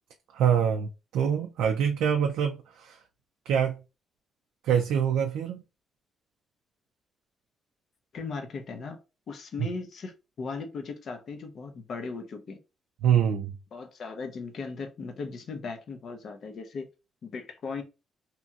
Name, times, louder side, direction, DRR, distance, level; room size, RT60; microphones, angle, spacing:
voice 1, 0.3-3.0 3.5-3.8 4.6-5.6 13.0-13.5, right 8 dB, 90° right, 0.3 m, -25 dB
voice 2, 8.1-9.0 9.3-12.6 13.7-16.9 17.2-17.8, left 4 dB, 60° left, 0.6 m, -37 dB
2.9 x 2.7 x 2.3 m
cardioid pair, 90°, 0 cm